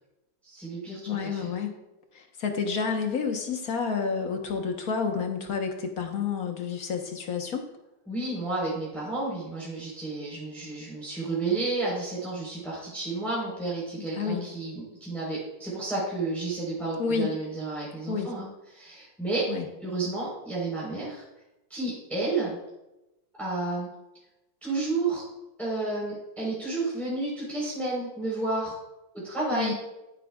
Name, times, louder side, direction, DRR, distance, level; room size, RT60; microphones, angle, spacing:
voice 1, 0.4-1.5 8.1-19.5 19.8-21.2 21.7-22.6 23.4-23.9 24.6-25.2 25.6-28.8 29.2-29.7, right 2 dB, ahead, -7 dB, 4.0 m, -31 dB
voice 2, 1.1-1.8 2.1-7.7 14.2-14.5 17.0-17.3 18.1-18.3 19.5-19.6 29.5-29.7, left 5 dB, 50° left, 4 dB, 1.5 m, -29 dB
15.0 x 8.8 x 2.4 m, 0.95 s
omnidirectional pair, 2.1 m